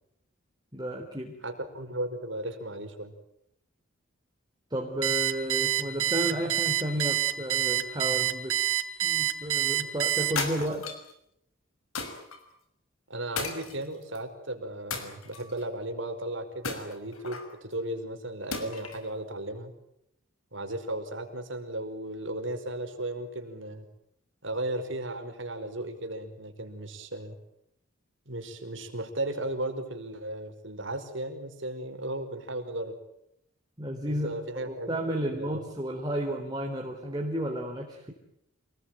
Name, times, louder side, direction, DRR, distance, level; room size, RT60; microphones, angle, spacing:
voice 1, 0.7-1.3 4.7-8.6 9.0-10.8 33.8-38.1, right 1 dB, 20° right, 0 dB, 3.7 m, -32 dB
voice 2, 1.4-3.1 13.1-19.7 20.5-23.9 24.4-27.4 28.3-33.0 34.1-35.6, right 1 dB, 60° right, 6 dB, 5.2 m, -35 dB
Alarm, 5.0-10.7, right 14 dB, 90° right, 5.8 m, -27 dB
sound 1, 10.4-11.1 12.0-12.4 13.4-14.2 14.9-15.6 16.6-17.5 18.5-19.1, left 4 dB, 90° left, 6.0 m, -35 dB
29.0 x 21.0 x 9.2 m, 0.79 s
head